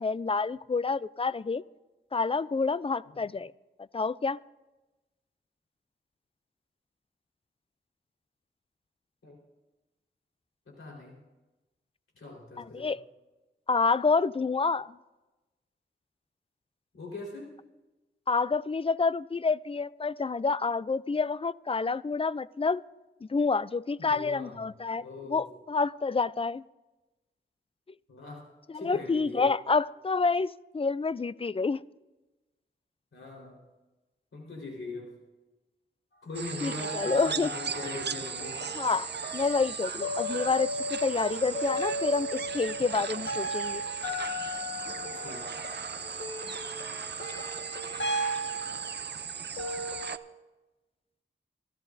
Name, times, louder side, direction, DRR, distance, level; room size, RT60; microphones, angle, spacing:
voice 1, 0.0-1.6 2.1-3.5 3.9-4.4 12.6-13.0 13.7-15.0 18.3-22.8 23.2-26.6 28.7-31.8 36.6-37.5 38.8-43.8, left 4 dB, 25° left, 18 dB, 0.4 m, -28 dB
voice 2, 10.7-11.2 12.2-13.0 16.9-17.5 24.1-24.6 25.0-25.6 28.1-28.5 28.7-29.5 33.1-33.6 34.3-35.1 36.2-38.6 45.1-45.6, left 2 dB, 90° left, -2 dB, 4.3 m, -41 dB
sound 1, 36.3-50.2, right 6 dB, 55° right, 0.5 m, -38 dB
sound 2, 36.7-50.1, equal, 60° left, 1.5 m, -36 dB
27.0 x 14.0 x 2.7 m, 1.1 s
cardioid pair, 50°, 21 cm